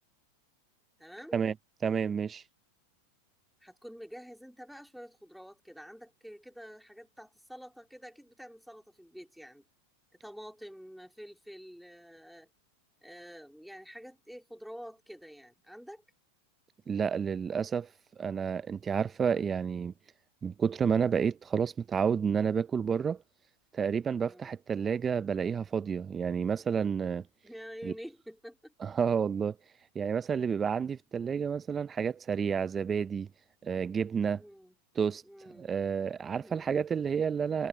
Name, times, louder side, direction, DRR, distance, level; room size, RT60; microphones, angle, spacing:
voice 1, 1.0-1.4 3.6-9.6 10.2-12.5 13.0-16.0 24.2-24.6 27.4-28.7 34.4-34.8 35.2-35.7 36.3-36.7, equal, ahead, 3.2 m, -48 dB
voice 2, 1.8-2.4 16.9-17.9 18.2-19.9 20.4-23.2 23.7-27.2 27.8-27.9 28.8-29.6 29.9-33.3 33.6-34.4 35.0-35.2 35.5-37.7, right 6 dB, 25° right, 0.7 m, -30 dB
hypercardioid pair, 100°, 0 cm